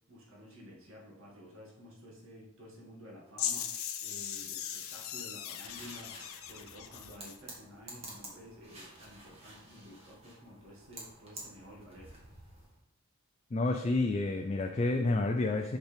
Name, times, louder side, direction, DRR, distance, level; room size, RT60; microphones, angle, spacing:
voice 1, 0.1-12.1, equal, 65° right, -3 dB, 1.8 m, -52 dB
sound 1, 3.4-7.4, left 9 dB, 70° left, 0.6 m, -39 dB
sound 2, 5.6-12.8, right 1 dB, 30° right, 1.6 m, -51 dB
voice 2, 13.5-15.8, left 2 dB, 30° left, 4 dB, 0.3 m, -29 dB
6.1 x 5.3 x 3.4 m, 0.85 s
head